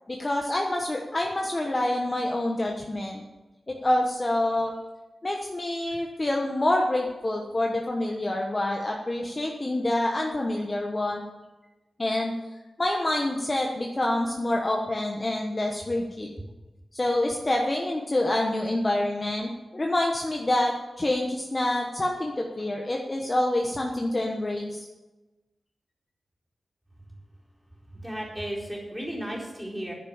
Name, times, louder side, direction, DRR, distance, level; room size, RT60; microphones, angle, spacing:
voice 1, 0.1-3.2 3.7-4.7 5.2-11.2 12.0-12.3 12.8-16.3 16.9-24.8, left 1 dB, 25° left, 0 dB, 1.2 m, -27 dB
voice 2, 27.9-29.9, right 1 dB, 5° right, -4 dB, 4.1 m, -34 dB
11.0 x 10.5 x 7.2 m, 1.1 s
wide cardioid pair, 135°, 0 cm